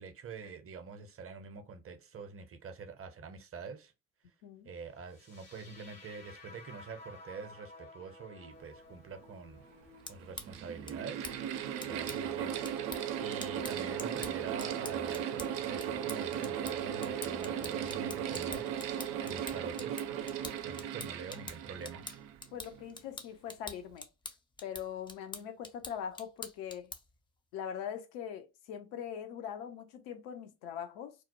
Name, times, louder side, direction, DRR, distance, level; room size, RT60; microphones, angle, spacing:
voice 1, 0.0-3.9 4.7-9.6 10.1-11.3 11.8-12.5 13.2-18.7 19.2-20.0 20.6-22.0, right 5 dB, 30° right, 0.6 m, -45 dB
sound 1, 5.0-13.0, left 2 dB, 90° left, 1.1 m, -56 dB
Mechanical fan, 9.2-9.3 10.2-22.8, right 9 dB, 70° right, 0.5 m, -37 dB
sound 2, 9.8-27.2, left 3 dB, 10° left, 0.3 m, -48 dB
voice 2, 19.0-19.5 22.5-24.1 24.6-26.9 27.5-31.2, left 8 dB, 70° left, 0.6 m, -42 dB
2.4 x 2.0 x 2.8 m
hypercardioid pair, 45°, 45 cm